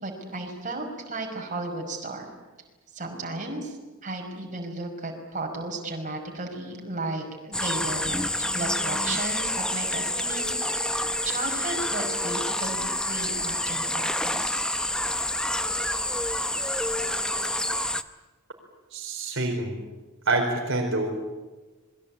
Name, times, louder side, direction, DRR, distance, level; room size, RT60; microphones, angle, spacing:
voice 1, 0.0-2.3 2.9-10.5 10.8-14.6, right 2 dB, 40° right, 1 dB, 5.5 m, -34 dB
sound 1, 7.5-18.0, left 1 dB, 5° left, 0.8 m, -28 dB
voice 2, 18.9-19.8 20.2-21.1, right 2 dB, 65° right, 2 dB, 4.5 m, -26 dB
27.5 x 22.0 x 8.5 m, 1.2 s
head